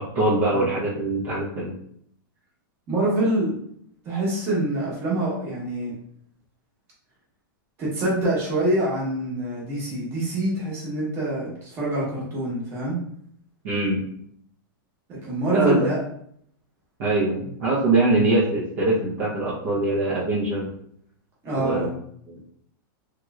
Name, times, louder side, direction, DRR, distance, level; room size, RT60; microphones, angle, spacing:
voice 1, 0.1-1.7 13.6-14.0 15.5-15.9 17.0-20.7 21.5-21.9 22.3-22.4, right 2 dB, 40° right, -7 dB, 0.7 m, -23 dB
voice 2, 2.9-3.5 4.0-5.9 7.8-13.0 15.1-16.0 21.4-21.9, right 1 dB, 20° right, -5 dB, 1.1 m, -25 dB
3.1 x 2.9 x 2.3 m, 0.68 s
supercardioid pair, 170°, 12 cm